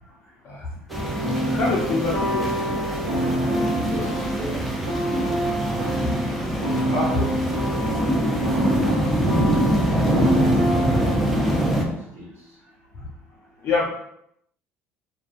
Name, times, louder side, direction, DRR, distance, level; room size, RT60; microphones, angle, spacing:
sound 1, 0.9-11.9, right 1 dB, ahead, 0.5 m, -24 dB
sound 2, 0.9-11.9, right 1 dB, 80° right, 0.7 m, -27 dB
voice 1, 1.5-2.9 6.9-7.6 10.4-10.7 13.6-13.9, left 3 dB, 50° left, -4 dB, 0.5 m, -26 dB
voice 2, 3.8-4.8 5.1-5.5 6.5-7.6 11.0-12.6, right 1 dB, 50° right, -6 dB, 1.2 m, -39 dB
2.3 x 2.2 x 2.4 m, 0.74 s
hypercardioid pair, 60°, 6 cm